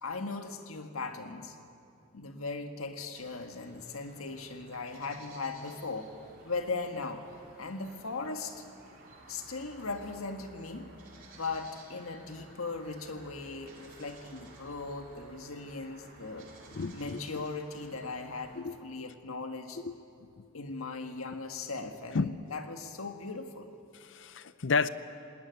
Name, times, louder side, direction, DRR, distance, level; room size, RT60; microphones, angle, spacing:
voice 1, 0.0-1.6 2.1-6.1 6.4-7.3 7.6-8.6 9.3-10.9 11.3-16.5 16.9-19.8 20.5-23.7, left 3 dB, 85° left, 1.7 m, -38 dB
sound 1, 3.1-18.6, right 2 dB, 40° right, 3.8 m, -55 dB
voice 2, 16.7-17.2 18.6-18.8 19.8-20.0 20.4-20.5 22.1-22.3 24.0-24.9, left 4 dB, 60° left, 0.6 m, -31 dB
19.0 x 19.0 x 9.2 m
head